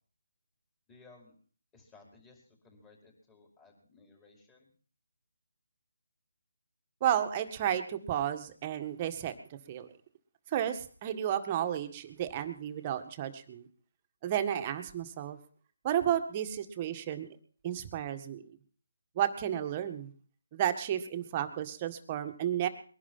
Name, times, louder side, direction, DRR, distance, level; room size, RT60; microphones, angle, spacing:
voice 1, 0.9-1.3 1.7-4.7, left 3 dB, 15° left, 0 dB, 5.2 m, -59 dB
voice 2, 7.0-9.3 9.7-9.9 10.5-13.7 14.2-15.4 15.8-17.3 17.6-18.4 19.2-20.1 20.5-22.7, right 10 dB, 25° right, 8 dB, 1.9 m, -32 dB
21.5 x 11.5 x 5.7 m, 0.43 s
figure-of-eight pair, 160°, 0 cm